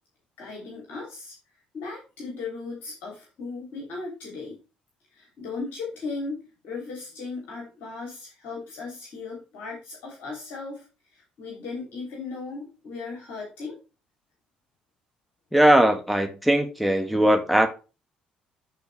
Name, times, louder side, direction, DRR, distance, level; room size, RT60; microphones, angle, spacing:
voice 1, 0.4-1.3 1.7-4.6 5.1-6.4 6.6-10.8 11.1-13.8, left 4 dB, 60° left, 2.9 m, -37 dB
voice 2, 15.5-17.7, right 1 dB, ahead, 1.5 m, -19 dB
13.0 x 4.3 x 3.3 m
figure-of-eight pair, 50°, 4 cm